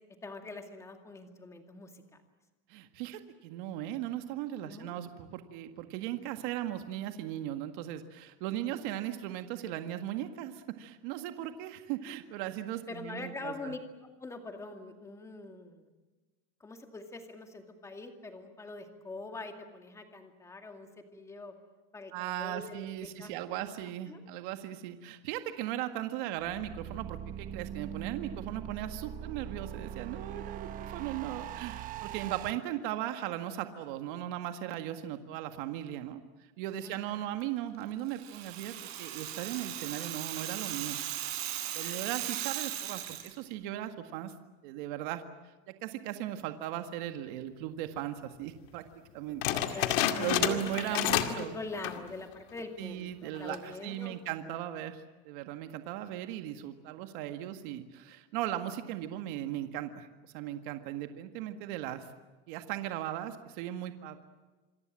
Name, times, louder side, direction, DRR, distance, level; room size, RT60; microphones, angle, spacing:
voice 1, 0.2-2.0 4.6-5.0 8.5-9.1 12.9-13.8 14.2-15.9 16.6-21.5 21.9-23.7 24.1-24.2 36.7-37.2 41.8-42.0 49.5-54.2 54.5-54.6, left 3 dB, 10° left, 5 dB, 2.3 m, -44 dB
voice 2, 2.7-13.7 22.1-36.2 36.6-41.0 41.7-44.3 44.6-45.2 45.8-48.8 49.1-49.8 50.2-51.5 52.8-62.0 62.5-64.2, right 12 dB, 55° right, 8 dB, 1.8 m, -38 dB
sound 1, 26.4-32.5, right 10 dB, 25° right, 1.0 m, -41 dB
Rattle (instrument), 38.1-43.3, right 12 dB, 80° right, 6.0 m, -38 dB
sound 2, 49.4-51.5 51.7-52.1 52.6-52.7 53.3-53.7, left 12 dB, 60° left, 2.3 m, -30 dB
27.5 x 23.0 x 7.5 m, 1.2 s
supercardioid pair, 170°, 30 cm